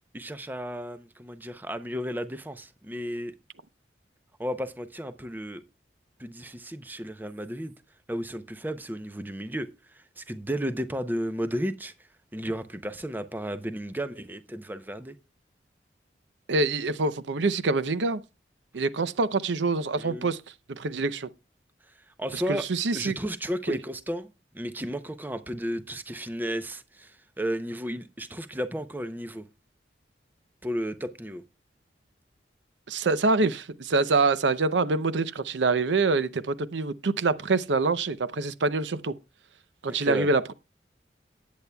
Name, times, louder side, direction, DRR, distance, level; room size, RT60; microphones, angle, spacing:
voice 1, 0.1-3.3 4.4-5.6 6.2-7.7 8.1-11.9 12.3-15.2 20.0-20.3 22.1-22.7 22.9-24.3 24.5-29.4 30.6-31.4 39.9-40.3, equal, 10° right, 0.6 m, -33 dB
voice 2, 16.5-18.2 18.7-20.4 20.7-21.3 22.3-23.1 23.7-23.8 32.9-39.1 39.8-40.5, right 3 dB, 80° right, 0.6 m, -25 dB
19.0 x 8.5 x 2.3 m
head